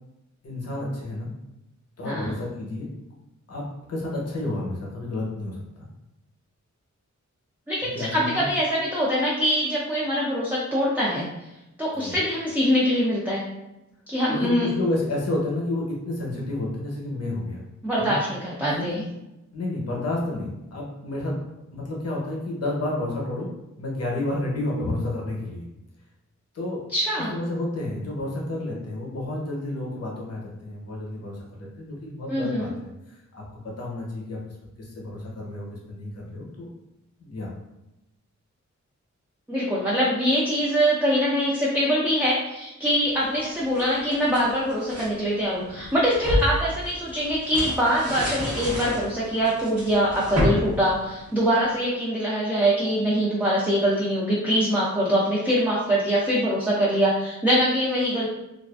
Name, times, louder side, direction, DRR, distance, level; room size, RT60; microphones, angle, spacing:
voice 1, 0.4-1.3 2.0-2.9 3.5-5.6 7.8-8.5 11.9-12.2 14.3-17.6 18.0-18.2 18.8-18.9 19.5-21.4 21.7-23.5 23.8-25.7 26.5-26.9 27.3-34.4 34.8-36.7 37.2-37.5, left 1 dB, 55° left, -3 dB, 0.7 m, -30 dB
voice 2, 7.7-11.3 11.8-13.4 14.1-14.7 17.8-19.0 26.9-27.3 32.3-32.7 39.5-58.3, equal, 5° right, -6 dB, 0.4 m, -23 dB
sound 1, 43.2-45.1 45.7-51.7, equal, 55° right, 1.0 m, -30 dB
2.4 x 2.3 x 2.2 m, 0.93 s
wide cardioid pair, 125°, 30 cm